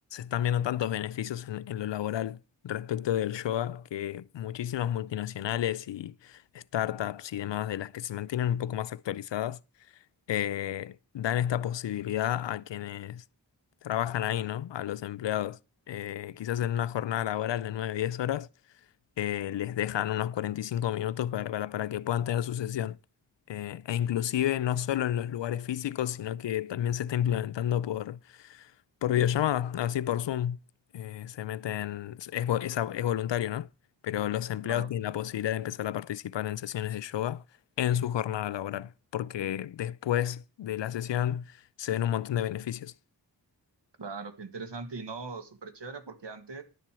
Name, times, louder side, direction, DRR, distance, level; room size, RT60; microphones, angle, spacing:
voice 1, 0.1-2.4 2.6-9.6 10.3-13.2 13.8-15.6 15.9-18.5 19.2-23.0 23.5-28.7 29.0-30.6 30.9-33.7 34.0-37.4 37.8-42.9, left 11 dB, 85° left, 0.5 m, -31 dB
voice 2, 44.0-46.6, right 4 dB, 75° right, 1.9 m, -40 dB
11.0 x 7.5 x 6.2 m
cardioid pair, 55°, 42 cm